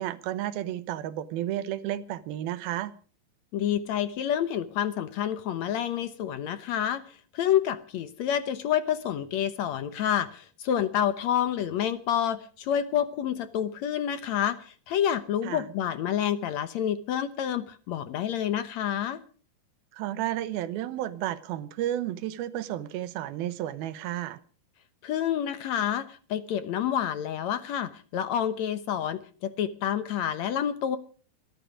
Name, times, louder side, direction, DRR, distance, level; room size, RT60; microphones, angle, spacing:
voice 1, 0.0-2.9 15.4-15.7 19.9-24.4, right 12 dB, 85° right, 2.9 m, -32 dB
voice 2, 3.5-19.2 25.0-31.0, left 9 dB, 65° left, 1.8 m, -28 dB
22.5 x 12.5 x 5.0 m
omnidirectional pair, 4.2 m